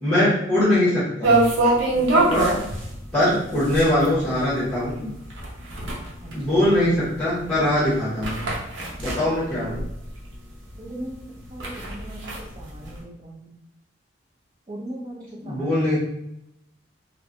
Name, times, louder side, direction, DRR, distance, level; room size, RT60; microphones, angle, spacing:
voice 1, 0.0-1.4 2.3-2.5 3.1-5.1 6.3-8.5 9.0-9.8 15.4-16.0, left 1 dB, 10° left, -11 dB, 1.0 m, -22 dB
sound 1, 1.2-10.3 10.7-10.8 11.2-13.0, right 2 dB, 70° right, 0.7 m, -24 dB
voice 2, 1.9-2.4 6.2-6.6 10.8-11.2 11.5-13.6 14.7-15.8, right 1 dB, 25° right, -2 dB, 0.5 m, -38 dB
3.1 x 2.1 x 2.5 m, 0.80 s
head